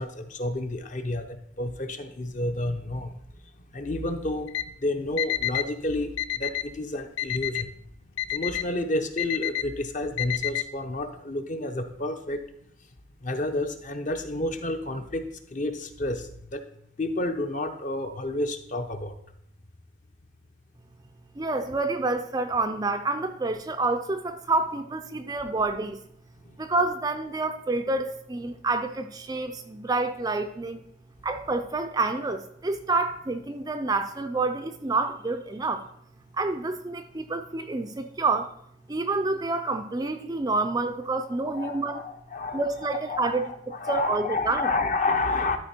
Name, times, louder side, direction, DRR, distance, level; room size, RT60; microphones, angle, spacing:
voice 1, 0.0-3.1 3.7-4.5 4.8-7.7 8.3-12.4 13.2-16.6 17.0-19.1 41.6-42.7 43.1-45.6, left 2 dB, 40° left, 7 dB, 0.7 m, -30 dB
Alarm, 4.5-4.6 5.2-5.7 6.2-6.7 7.2-7.7 8.2-8.6 9.2-9.7 10.2-10.6, left 13 dB, 85° left, 0.4 m, -28 dB
voice 2, 21.4-26.0 26.6-30.8 31.2-35.8 36.4-38.5 38.9-42.0 42.5-43.5 43.9-44.7, right 3 dB, 20° right, 7 dB, 0.4 m, -28 dB
12.5 x 4.4 x 4.3 m, 0.70 s
head